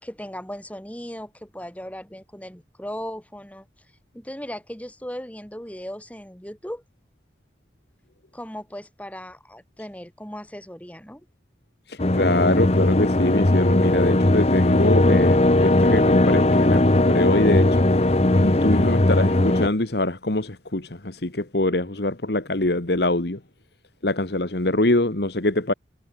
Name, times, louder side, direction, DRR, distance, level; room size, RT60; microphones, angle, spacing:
voice 1, 0.0-3.7 4.1-6.8 8.3-11.3, equal, 10° left, 2.9 m, -37 dB
voice 2, 11.9-18.1 18.4-23.4 24.0-25.7, left 2 dB, 65° left, 1.7 m, -24 dB
sound 1, 12.0-19.7, left 1 dB, 35° left, 0.9 m, -18 dB
head